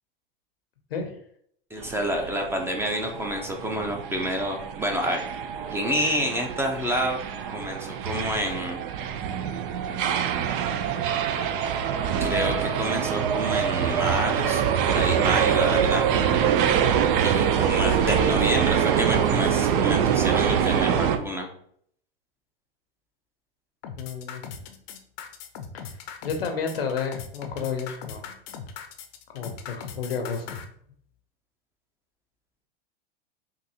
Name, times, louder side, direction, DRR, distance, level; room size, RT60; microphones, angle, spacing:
voice 1, 1.7-5.2 5.7-7.2 7.5-8.8 12.2-16.1 17.2-21.5, equal, 10° right, 2 dB, 0.5 m, -28 dB
sound 1, 1.8-21.2, right 8 dB, 65° right, 0.5 m, -25 dB
sound 2, 23.8-30.6, left 7 dB, 55° left, 0.6 m, -39 dB
voice 2, 24.0-24.4 25.7-25.8 26.2-28.3 29.3-30.4, left 6 dB, 90° left, 5 dB, 0.8 m, -31 dB
3.7 x 2.6 x 2.8 m, 0.65 s
hypercardioid pair, 100°, 29 cm